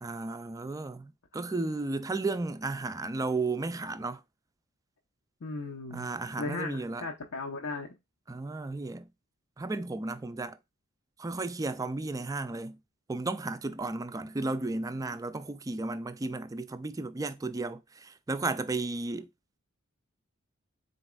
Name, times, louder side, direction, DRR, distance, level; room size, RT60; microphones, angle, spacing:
voice 1, 0.0-4.2 5.9-7.1 8.3-9.0 9.6-10.6 11.2-12.8 13.1-19.3, right 3 dB, 15° right, 0.3 m, -34 dB
voice 2, 5.4-6.1 6.4-8.0, left 3 dB, 70° left, 0.7 m, -36 dB
4.1 x 4.0 x 2.2 m
head